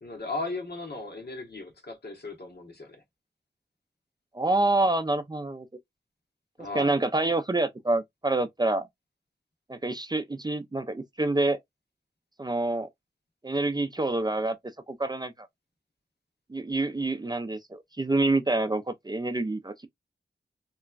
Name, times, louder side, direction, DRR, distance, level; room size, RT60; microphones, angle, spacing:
voice 1, 0.0-3.0 6.6-7.0, left 2 dB, 65° left, 1.2 m, -36 dB
voice 2, 4.3-5.7 6.6-8.9 9.7-11.6 12.4-12.9 13.4-14.6 14.9-15.5 16.5-19.9, right 2 dB, 25° right, 0.4 m, -27 dB
3.0 x 2.3 x 2.3 m
cardioid pair, 45°, 18 cm